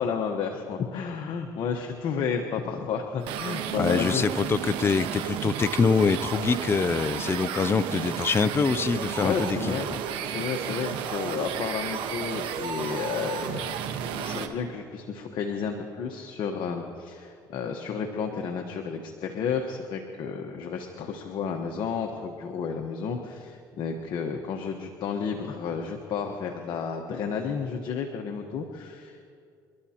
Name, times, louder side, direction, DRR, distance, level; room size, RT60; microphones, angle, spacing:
voice 1, 0.0-4.6 7.4-7.5 9.2-9.9 10.2-29.3, left 6 dB, 60° left, 3 dB, 1.2 m, -32 dB
sound 1, 3.2-14.5, right 9 dB, 75° right, 1.2 m, -32 dB
voice 2, 3.8-10.0, left 5 dB, 25° left, 14 dB, 0.5 m, -25 dB
28.5 x 12.5 x 2.9 m, 2.4 s
supercardioid pair, 85°, 9 cm